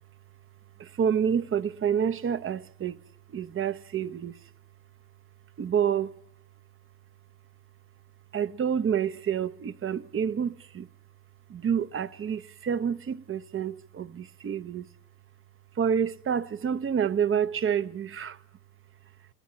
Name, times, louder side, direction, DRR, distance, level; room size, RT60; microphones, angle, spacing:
voice 1, 0.8-3.0 3.3-4.3 5.6-6.2 8.3-10.9 11.5-14.9 15.8-18.4, right 8 dB, 45° right, 0.8 m, -28 dB
21.0 x 15.5 x 8.5 m
cardioid pair, 90°, 30 cm